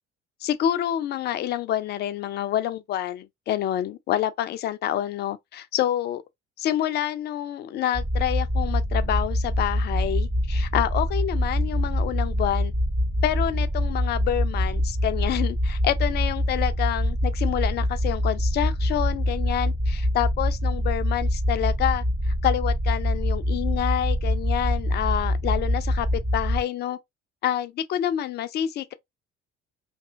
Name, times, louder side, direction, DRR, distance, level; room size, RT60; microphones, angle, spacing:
voice 1, 0.4-6.2 6.6-12.7 13.2-27.0 27.4-28.9, left 11 dB, 30° left, 0.3 m, -27 dB
sound 1, 7.9-26.6, equal, 20° right, 0.8 m, -25 dB
2.6 x 2.6 x 2.4 m
figure-of-eight pair, 55°, 36 cm